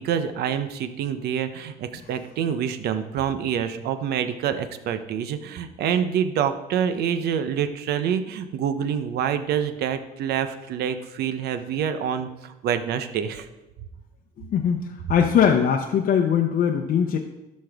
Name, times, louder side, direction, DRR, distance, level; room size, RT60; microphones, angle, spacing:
voice 1, 0.0-13.5, right 8 dB, 70° right, 10 dB, 0.7 m, -26 dB
voice 2, 14.4-17.2, left 8 dB, 55° left, 2 dB, 0.7 m, -21 dB
12.5 x 5.4 x 3.5 m, 1.0 s
cardioid pair, 110°, 17 cm